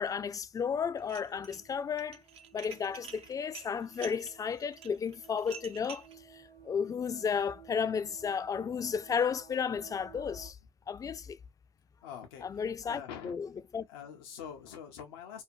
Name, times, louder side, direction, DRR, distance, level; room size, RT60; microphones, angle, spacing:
voice 1, 0.0-2.2 2.5-6.1 6.3-10.6 10.9-11.4 12.5-13.5 13.7-13.9, left 6 dB, 30° left, 0.4 m, -33 dB
sound 1, 0.6-10.5, right 7 dB, 80° right, 1.0 m, -57 dB
Dishes pots and pans, 1.0-1.6 1.9-6.1, right 7 dB, 55° right, 0.5 m, -48 dB
voice 2, 12.0-13.4 13.9-15.4, left 8 dB, 85° left, 0.6 m, -45 dB
2.7 x 2.2 x 2.5 m
hypercardioid pair, 70°, 12 cm